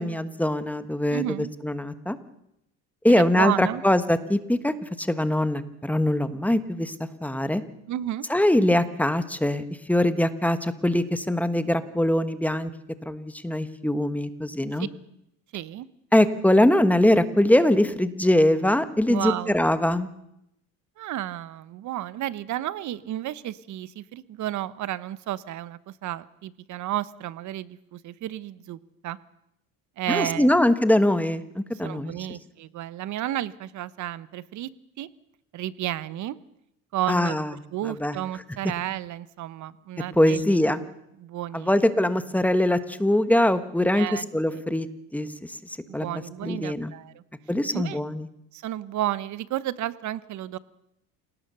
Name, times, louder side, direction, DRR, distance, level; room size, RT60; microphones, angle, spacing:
voice 1, 0.0-2.2 3.0-6.9 7.2-7.6 8.3-9.6 9.9-12.7 13.0-14.9 16.1-20.1 30.1-32.1 37.1-37.5 37.8-38.2 40.1-40.8 41.5-44.9 45.1-45.6 45.9-46.1 46.4-46.9 47.5-48.3, left 1 dB, 5° left, 12 dB, 1.3 m, -22 dB
voice 2, 1.1-1.5 3.1-3.8 7.9-8.2 15.5-15.9 19.1-19.5 21.0-29.2 30.0-30.5 31.8-34.7 35.0-35.1 35.5-36.4 36.9-37.4 37.7-40.4 41.2-41.7 43.9-44.6 45.9-47.2 47.7-48.0 48.5-50.6, right 13 dB, 55° right, 17 dB, 1.1 m, -32 dB
27.5 x 18.5 x 6.9 m, 0.81 s
cardioid pair, 115°, 36 cm